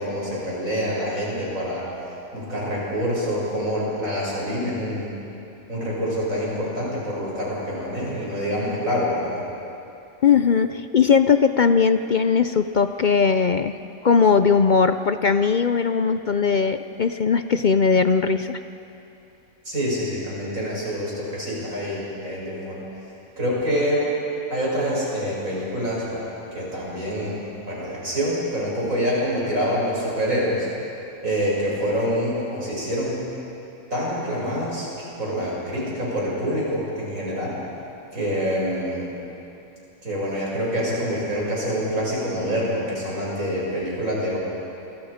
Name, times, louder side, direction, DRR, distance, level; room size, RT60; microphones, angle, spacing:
voice 1, 0.0-1.9 2.3-5.1 5.7-9.4 19.6-22.8 23.4-24.1 24.5-26.2 26.5-27.4 27.7-30.7 31.2-33.2 33.9-34.9 35.2-37.6 38.1-39.1 40.0-44.4, equal, 75° right, -5 dB, 7.2 m, -26 dB
voice 2, 10.2-13.8 14.0-18.6, left 6 dB, 55° left, 9 dB, 0.5 m, -19 dB
28.0 x 24.0 x 5.1 m, 2.9 s
omnidirectional pair, 1.4 m